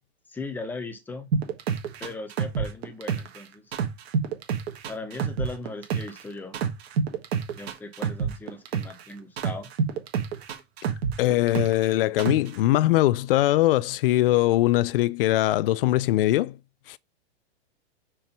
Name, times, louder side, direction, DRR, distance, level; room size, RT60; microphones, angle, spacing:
voice 1, 0.3-1.3 2.0-3.7 4.9-6.6 7.5-9.7, left 3 dB, 5° left, 0.7 m, -38 dB
sound 1, 1.3-3.4 3.7-6.2 6.5-9.0 9.4-11.9 12.2-12.6, right 6 dB, 65° right, 1.7 m, -27 dB
voice 2, 11.2-16.6 16.9-17.0, left 15 dB, 55° left, 0.5 m, -21 dB
4.6 x 4.5 x 5.3 m
hypercardioid pair, 150°, 34 cm